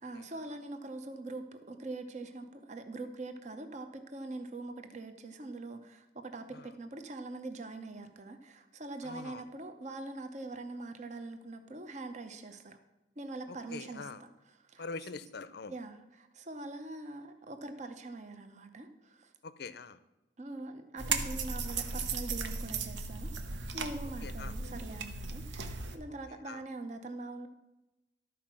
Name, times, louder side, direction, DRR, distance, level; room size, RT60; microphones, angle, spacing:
voice 1, 0.0-12.8 13.2-15.1 15.7-19.3 20.4-23.3 23.7-27.5, right 2 dB, 40° right, 7 dB, 0.8 m, -43 dB
voice 2, 9.0-9.4 13.7-14.2 14.8-15.7 19.4-20.0 24.2-24.5 26.5-26.6, left 4 dB, 55° left, 14 dB, 0.5 m, -43 dB
sound 1, 21.0-26.0, right 4 dB, 75° right, 0.9 m, -36 dB
12.5 x 4.7 x 6.0 m, 1.0 s
head